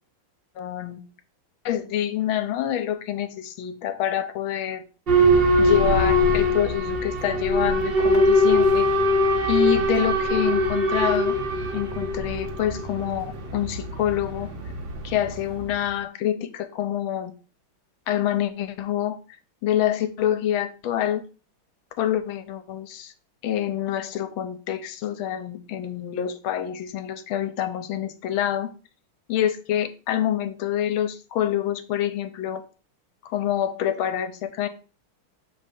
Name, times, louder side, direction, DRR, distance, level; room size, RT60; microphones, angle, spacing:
voice 1, 0.6-1.0 1.6-4.8 5.6-8.9 9.5-11.4 11.7-14.5 15.0-17.3 18.1-19.2 19.6-21.2 22.0-23.1 23.4-28.7 29.3-32.6 33.2-34.7, left 11 dB, 75° left, 10 dB, 1.5 m, -26 dB
Boat Water vehicle / Alarm, 5.1-15.7, equal, 45° right, 0.7 m, -22 dB
6.6 x 3.3 x 5.2 m, 0.36 s
omnidirectional pair, 2.3 m